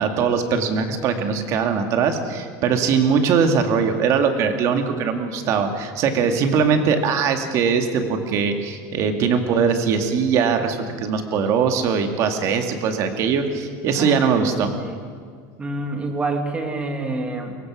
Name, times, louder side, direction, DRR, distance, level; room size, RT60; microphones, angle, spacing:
voice 1, 0.0-14.7, right 6 dB, 35° right, 6 dB, 2.1 m, -21 dB
voice 2, 14.0-15.0 15.6-17.5, right 2 dB, 15° right, 5 dB, 2.1 m, -28 dB
23.5 x 23.0 x 6.3 m, 2.1 s
cardioid pair, 175°, 9 cm